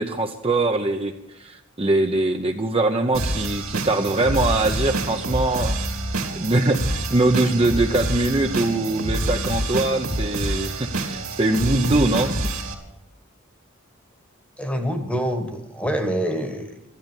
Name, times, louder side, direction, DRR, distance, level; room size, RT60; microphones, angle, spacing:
voice 1, 0.0-5.8 6.3-12.3, right 2 dB, 25° right, 4 dB, 0.7 m, -22 dB
sound 1, 3.1-12.7, right 2 dB, 85° right, 2.5 m, -27 dB
voice 2, 14.6-16.8, equal, 5° left, 6 dB, 1.3 m, -26 dB
13.5 x 11.0 x 7.2 m, 0.92 s
head